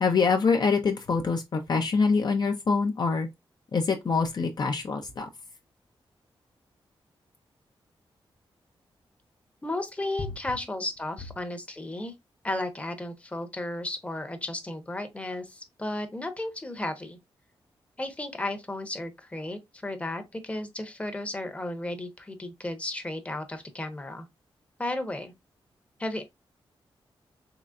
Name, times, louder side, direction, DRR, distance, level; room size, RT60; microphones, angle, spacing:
voice 1, 0.0-3.3 3.7-5.3, left 4 dB, 45° left, 0.5 m, -25 dB
voice 2, 9.6-12.1 12.4-17.2 18.0-24.3 24.8-25.3 26.0-26.2, left 1 dB, 15° left, 0.8 m, -34 dB
3.8 x 3.1 x 2.3 m
wide cardioid pair, 100°, 9 cm